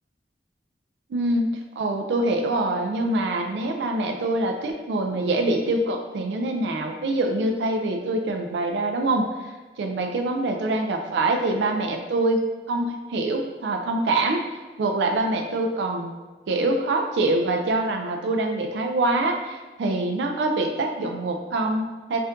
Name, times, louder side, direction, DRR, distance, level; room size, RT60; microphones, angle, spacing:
voice 1, 1.1-1.5 1.8-9.5 9.8-12.4 12.7-14.4 14.8-16.1 16.5-22.2, right 2 dB, 75° right, 3 dB, 0.3 m, -25 dB
4.2 x 2.5 x 2.5 m, 1.3 s
head